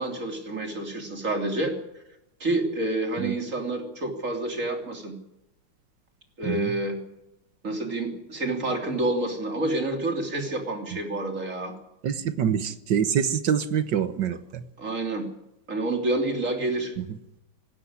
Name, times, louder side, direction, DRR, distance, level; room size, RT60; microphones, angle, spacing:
voice 1, 0.0-1.7 2.4-5.2 6.4-7.0 7.6-11.8 14.8-15.3 15.7-16.9, right 2 dB, 35° right, 3.6 m, -28 dB
voice 2, 12.0-14.4, right 8 dB, 60° right, 1.6 m, -25 dB
18.5 x 16.0 x 9.8 m
omnidirectional pair, 2.3 m